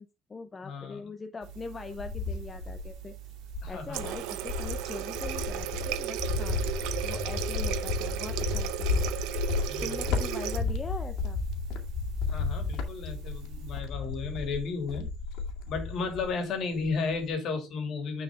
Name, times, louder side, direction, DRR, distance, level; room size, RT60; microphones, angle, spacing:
voice 1, 0.0-3.3 3.7-6.6 7.0-9.0 9.8-11.4, left 4 dB, 20° left, 0.5 m, -41 dB
voice 2, 0.6-1.1 3.6-4.0 9.7-10.0 12.3-15.1 15.7-18.2, left 4 dB, 45° left, 2.5 m, -33 dB
sound 1, 1.4-13.8, right 15 dB, 65° right, 2.3 m, -46 dB
Cricket, 1.5-3.0 3.5-16.4 16.7-17.3, left 4 dB, 70° left, 2.2 m, -33 dB
Water tap faucet, 3.9-10.6, right 12 dB, 85° right, 0.8 m, -35 dB
9.9 x 4.7 x 3.6 m
cardioid pair, 165°, 0 cm